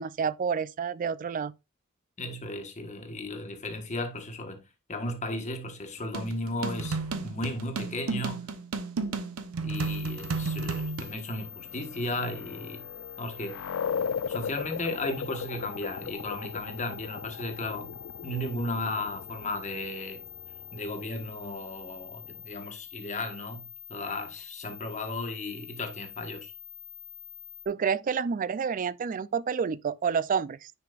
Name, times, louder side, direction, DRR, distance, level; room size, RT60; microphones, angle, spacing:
voice 1, 0.0-1.5 27.7-30.7, right 6 dB, 40° right, 0.3 m, -29 dB
voice 2, 2.2-4.6 4.9-8.5 9.6-12.9 13.2-13.6 14.3-18.0 18.2-20.2 20.7-26.5, left 2 dB, 35° left, 1.4 m, -35 dB
sound 1, 6.1-11.1, right 3 dB, 80° right, 0.9 m, -32 dB
sound 2, 9.7-27.7, left 9 dB, 50° left, 1.5 m, -46 dB
sound 3, 11.1-22.5, left 7 dB, 65° left, 0.3 m, -38 dB
9.9 x 5.0 x 2.4 m
head